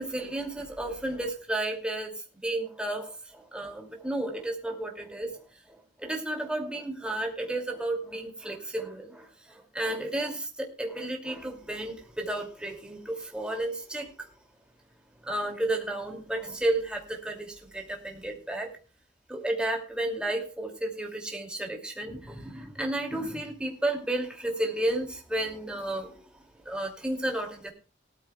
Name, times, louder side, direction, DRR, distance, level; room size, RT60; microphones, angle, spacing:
voice 1, 0.0-14.3 15.2-18.7 19.3-26.3 26.6-27.7, right 1 dB, 5° right, 1 dB, 2.5 m, -32 dB
18.5 x 13.5 x 2.3 m, 0.36 s
head